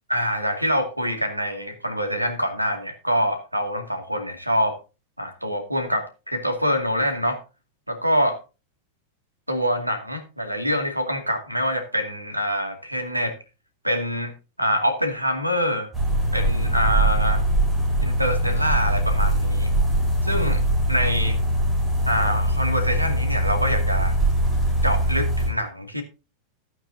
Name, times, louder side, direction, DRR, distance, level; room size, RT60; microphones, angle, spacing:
voice 1, 0.1-4.8 5.2-7.4 7.9-8.4 9.5-13.3 13.8-14.3 14.6-15.9 16.3-17.4 18.0-19.7 20.2-21.4 22.0-24.2 24.8-26.0, equal, 85° right, 6 dB, 2.3 m, -25 dB
sound 1, 15.9-25.5, right 1 dB, 10° right, 7.5 m, -22 dB
15.0 x 8.9 x 2.8 m, 0.30 s
figure-of-eight pair, 90°, 0 cm